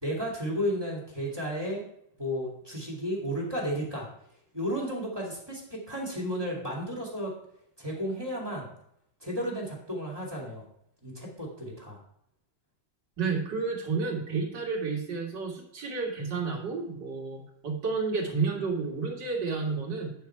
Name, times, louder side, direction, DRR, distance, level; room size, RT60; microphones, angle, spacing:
voice 1, 0.0-1.8 2.2-4.1 4.5-7.3 7.8-8.7 9.2-10.6 11.0-12.0, equal, 10° right, -3 dB, 2.4 m, -33 dB
voice 2, 13.2-20.1, right 4 dB, 55° right, -1 dB, 2.6 m, -31 dB
9.2 x 6.5 x 4.6 m, 0.72 s
omnidirectional pair, 2.3 m